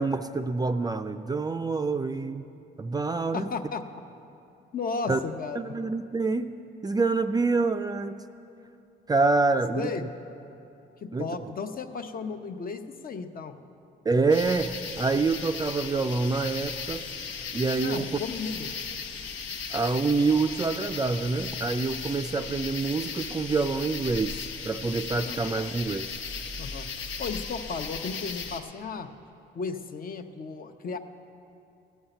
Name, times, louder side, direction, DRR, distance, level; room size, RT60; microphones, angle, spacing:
voice 1, 0.0-2.5 2.8-3.5 5.1-5.2 5.6-6.5 6.8-8.2 9.1-10.1 11.1-11.3 14.1-17.0 17.5-18.2 19.7-24.3 24.6-26.1, right 3 dB, 20° right, 8 dB, 0.4 m, -26 dB
voice 2, 3.3-3.8 4.7-5.8 9.8-10.1 11.0-13.6 17.8-18.7 23.0-23.1 25.2-25.4 26.6-26.9 27.2-29.1 29.5-31.0, left 4 dB, 45° left, 7 dB, 0.8 m, -34 dB
sound 1, 14.3-28.6, left 5 dB, 75° left, 1.2 m, -37 dB
15.5 x 5.5 x 9.0 m, 2.8 s
cardioid pair, 90°, 20 cm